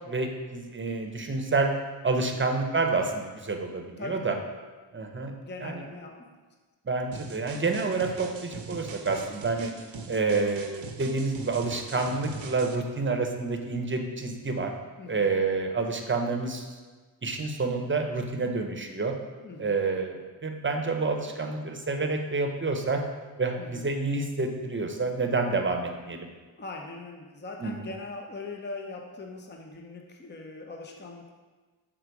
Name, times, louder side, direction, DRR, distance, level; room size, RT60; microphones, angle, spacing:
voice 1, 0.1-1.7 2.0-4.3 4.9-5.3 5.6-5.8 6.8-9.7 10.1-14.7 15.1-16.7 17.2-19.1 19.6-23.0 23.4-26.3 27.6-27.7, right 3 dB, 25° right, 4 dB, 0.8 m, -28 dB
voice 2, 4.0-4.4 5.4-6.3 9.1-9.3 15.0-15.4 19.4-19.8 23.6-23.9 26.6-31.3, left 3 dB, 25° left, 2 dB, 0.7 m, -41 dB
sound 1, 7.1-12.8, right 4 dB, 80° right, 0.8 m, -41 dB
6.7 x 3.7 x 4.7 m, 1.4 s
cardioid pair, 65°, 46 cm